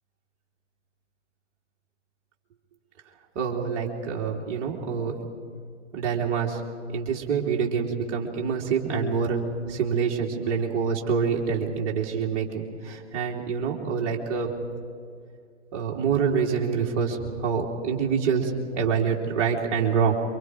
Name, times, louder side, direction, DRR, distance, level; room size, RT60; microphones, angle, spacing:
voice 1, 3.3-5.2 5.9-6.6 6.9-14.5 15.7-20.2, right 6 dB, 25° right, -1 dB, 3.0 m, -26 dB
28.0 x 25.0 x 4.8 m, 2.2 s
figure-of-eight pair, 125°, 37 cm